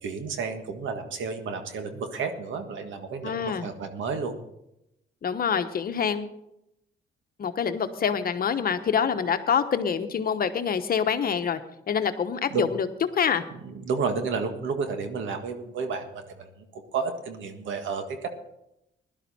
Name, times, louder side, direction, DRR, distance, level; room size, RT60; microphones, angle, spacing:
voice 1, 0.0-4.4 12.5-12.7 13.6-18.3, right 5 dB, 75° right, 7 dB, 1.8 m, -31 dB
voice 2, 3.2-3.7 5.2-6.3 7.4-11.6 11.9-12.9 13.1-13.4, left 7 dB, 50° left, 9 dB, 1.1 m, -26 dB
16.5 x 11.5 x 4.3 m, 0.83 s
cardioid pair, 90°, 20 cm